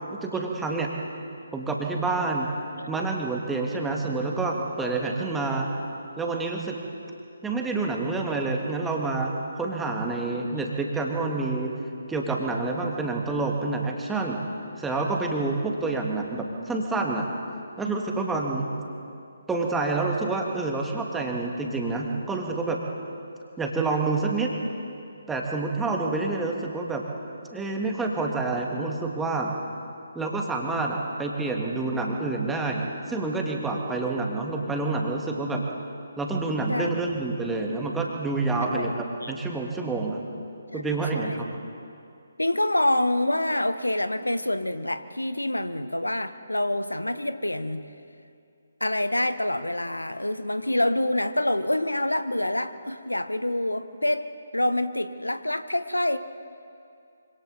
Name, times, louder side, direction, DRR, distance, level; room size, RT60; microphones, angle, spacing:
voice 1, 0.2-0.9 1.5-2.5 2.9-5.7 6.2-6.8 7.4-11.7 12.1-14.4 14.8-17.3 17.8-18.7 19.5-22.8 23.6-24.5 25.3-27.0 27.5-29.6 30.1-35.6 36.2-40.2 40.7-41.5, right 3 dB, 5° right, 0 dB, 1.9 m, -28 dB
voice 2, 36.7-37.1 38.7-38.9 39.2-39.3 40.7-41.4 42.4-47.9 48.8-56.2, left 1 dB, 80° left, 12 dB, 1.0 m, -27 dB
25.5 x 25.5 x 4.1 m, 2.5 s
figure-of-eight pair, 140°, 0 cm